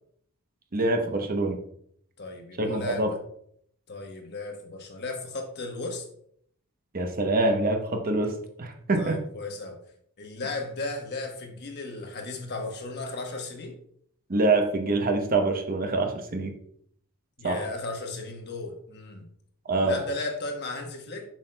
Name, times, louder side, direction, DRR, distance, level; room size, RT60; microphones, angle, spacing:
voice 1, 0.7-1.6 2.6-3.1 6.9-8.3 8.6-9.2 14.3-16.5 17.4-17.6 19.7-20.0, right 2 dB, 40° right, 5 dB, 0.8 m, -25 dB
voice 2, 2.2-3.2 3.9-6.0 9.0-9.8 10.2-13.7 17.4-19.3 19.8-21.2, left 3 dB, 50° left, 3 dB, 1.1 m, -35 dB
7.4 x 6.1 x 2.2 m, 0.66 s
head